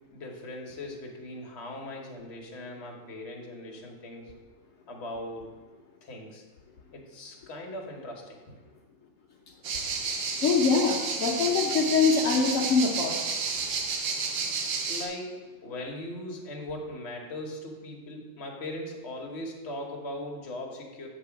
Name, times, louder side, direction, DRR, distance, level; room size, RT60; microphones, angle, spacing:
voice 1, 0.1-4.3 4.9-5.5 6.0-6.4 6.9-8.4 14.9-15.3 15.6-21.1, left 1 dB, 40° left, 0 dB, 1.0 m, -39 dB
sound 1, 9.6-15.1, right 5 dB, 70° right, 1.4 m, -31 dB
voice 2, 10.4-13.2, left 5 dB, 70° left, -1 dB, 0.7 m, -24 dB
7.6 x 3.4 x 5.7 m, 1.3 s
omnidirectional pair, 2.2 m